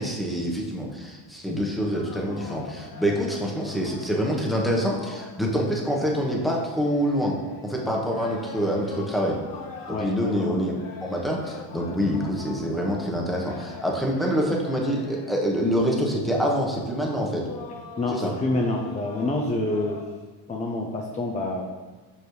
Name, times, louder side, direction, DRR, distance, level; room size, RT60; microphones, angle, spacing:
voice 1, 0.0-7.4 7.6-9.4 9.9-10.7 11.0-17.5 18.1-18.3, equal, ahead, -2 dB, 1.1 m, -26 dB
sound 1, 1.8-20.0, left 5 dB, 45° left, 1.0 m, -43 dB
voice 2, 18.0-20.0 20.5-21.6, left 2 dB, 15° left, 0 dB, 0.5 m, -27 dB
7.0 x 5.1 x 3.2 m, 1.3 s
cardioid pair, 115°, 46 cm